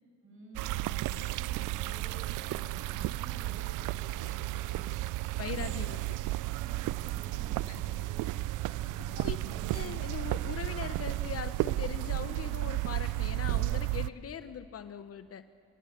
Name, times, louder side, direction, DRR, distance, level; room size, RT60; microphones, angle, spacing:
voice 1, 0.2-4.9 5.4-5.8 6.5-9.7, equal, 45° right, 0 dB, 7.9 m, -51 dB
sound 1, 0.5-14.1, right 18 dB, 85° right, 0.5 m, -33 dB
voice 2, 5.4-6.2 9.1-9.4 9.7-15.4, left 8 dB, 50° left, 12 dB, 0.9 m, -40 dB
27.0 x 14.5 x 8.7 m, 2.4 s
cardioid pair, 90°, 30 cm